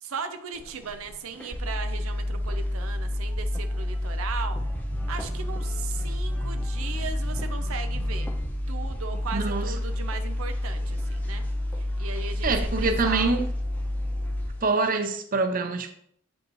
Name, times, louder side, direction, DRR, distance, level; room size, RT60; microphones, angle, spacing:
voice 1, 0.0-4.6 5.1-8.3 8.7-11.5 11.7-13.4, right 5 dB, 80° right, 0.6 m, -37 dB
sound 1, 0.5-14.9, equal, 10° left, 0.5 m, -44 dB
sound 2, 1.5-14.5, left 1 dB, 10° right, 1.2 m, -29 dB
voice 2, 9.3-9.7 12.4-13.4 14.6-15.9, right 3 dB, 40° right, 0.7 m, -25 dB
8.2 x 5.2 x 3.1 m
head